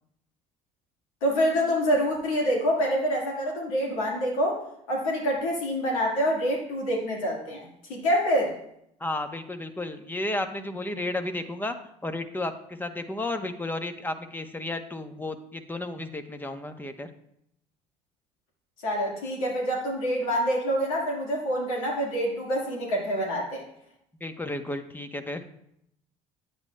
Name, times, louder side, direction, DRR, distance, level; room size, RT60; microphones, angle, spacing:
voice 1, 1.2-4.6 4.9-8.5 18.8-23.6, equal, 85° left, -1 dB, 1.7 m, -26 dB
voice 2, 9.0-11.7 12.0-17.1 24.2-25.4, left 2 dB, 10° left, 7 dB, 0.9 m, -33 dB
9.9 x 8.0 x 2.2 m, 0.75 s
hypercardioid pair, 65°, 17 cm